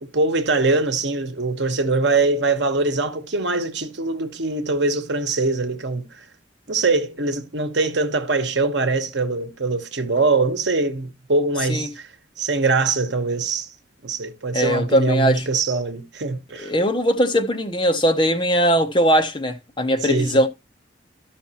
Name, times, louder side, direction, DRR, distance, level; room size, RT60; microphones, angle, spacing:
voice 1, 0.0-6.2 6.7-12.1 12.4-13.7 14.0-16.7 20.0-20.4, right 3 dB, 70° right, 1.0 m, -22 dB
voice 2, 14.5-15.4 16.6-20.5, equal, 25° left, 0.7 m, -20 dB
13.0 x 5.8 x 2.9 m
head